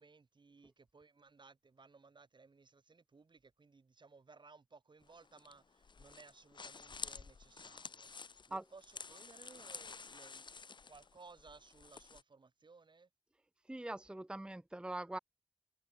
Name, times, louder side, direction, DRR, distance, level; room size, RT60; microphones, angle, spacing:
voice 1, 0.0-10.5 10.9-13.1, right 4 dB, 75° right, 5.0 m, -60 dB
sound 1, 5.0-12.2, left 5 dB, 75° left, 0.9 m, -51 dB
voice 2, 13.7-15.2, right 1 dB, 10° right, 0.5 m, -42 dB
wide cardioid pair, 60°, 8 cm